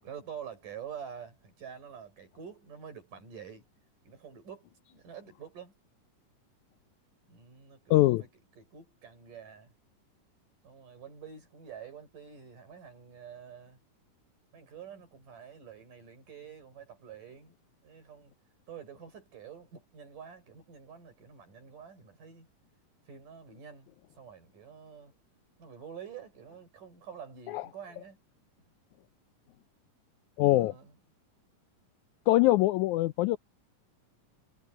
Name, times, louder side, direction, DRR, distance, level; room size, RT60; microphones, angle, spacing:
voice 1, 0.0-3.7 4.0-5.7 7.3-8.3 8.6-9.7 10.6-13.8 14.5-17.6 17.8-18.3 18.7-22.5 23.1-25.1 25.6-28.2 30.4-30.9, right 7 dB, 75° right, 7.6 m, -47 dB
voice 2, 7.9-8.2 27.5-27.6 30.4-30.7 32.3-33.4, left 17 dB, 80° left, 1.8 m, -23 dB
omnidirectional pair, 3.8 m